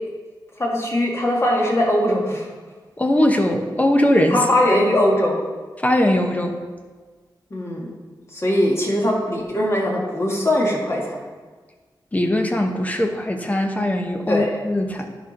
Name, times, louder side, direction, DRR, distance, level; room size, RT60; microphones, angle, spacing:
voice 1, 0.6-2.4 4.3-5.4 7.5-7.9 8.3-11.2 14.3-14.5, left 1 dB, 35° left, -2 dB, 1.8 m, -20 dB
voice 2, 3.0-4.4 5.8-6.6 12.1-15.1, left 1 dB, 20° left, 4 dB, 0.9 m, -20 dB
11.0 x 5.2 x 4.2 m, 1.4 s
wide cardioid pair, 100°, 8 cm